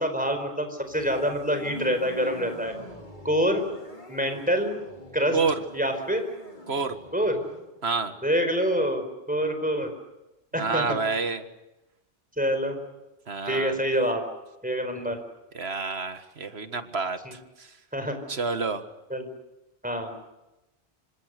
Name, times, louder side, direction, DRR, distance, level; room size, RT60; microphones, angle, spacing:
voice 1, 0.0-2.7 3.2-3.6 4.1-4.8 5.1-5.4 5.7-6.2 7.1-7.4 8.2-9.9 10.5-11.0 12.4-12.8 13.5-14.2 14.6-15.2 17.2-17.3 17.9-18.2 19.1-19.3 19.8-20.1, equal, 10° right, 6 dB, 4.7 m, -26 dB
sound 1, 0.8-7.7, left 2 dB, 45° left, 3.5 m, -43 dB
voice 2, 6.7-7.0 7.8-8.1 10.6-11.4 13.3-13.8 15.5-17.4 18.3-18.8, right 4 dB, 75° right, 9 dB, 1.9 m, -28 dB
26.0 x 25.5 x 6.7 m, 0.98 s
omnidirectional pair, 1.1 m